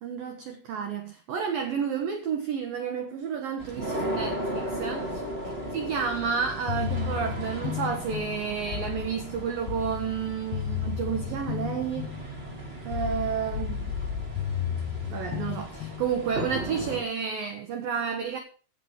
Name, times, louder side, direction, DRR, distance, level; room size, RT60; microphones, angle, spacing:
voice 1, 0.0-5.2 5.7-12.1 12.8-13.9 15.1-18.4, right 6 dB, 70° right, 2.2 m, -31 dB
sound 1, 3.6-17.0, right 1 dB, 25° right, 1.4 m, -37 dB
sound 2, 6.7-16.5, left 9 dB, 65° left, 2.6 m, -34 dB
16.0 x 6.0 x 6.2 m
omnidirectional pair, 5.8 m